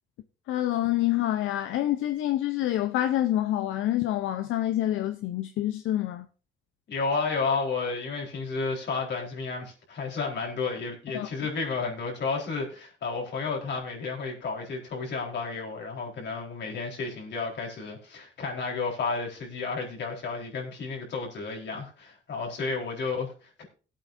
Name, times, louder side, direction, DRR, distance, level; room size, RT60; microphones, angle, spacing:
voice 1, 0.5-6.3 11.1-11.3, left 13 dB, 85° left, 0.7 m, -27 dB
voice 2, 6.9-23.6, left 4 dB, 60° left, 4.1 m, -32 dB
18.5 x 8.7 x 2.6 m
cardioid pair, 90°, 20 cm